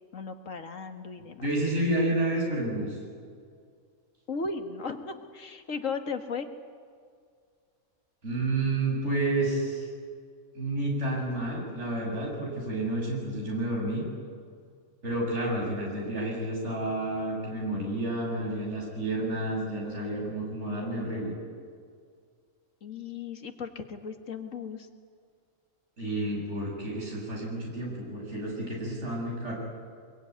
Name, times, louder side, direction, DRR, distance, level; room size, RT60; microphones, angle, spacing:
voice 1, 0.1-1.4 4.3-6.5 22.8-24.9, left 4 dB, 70° left, 7 dB, 1.9 m, -36 dB
voice 2, 1.2-3.0 8.2-9.9 10.5-14.1 15.0-21.3 26.0-29.5, right 1 dB, 55° right, -2 dB, 7.7 m, -30 dB
24.0 x 22.5 x 9.5 m, 2.1 s
omnidirectional pair, 1.4 m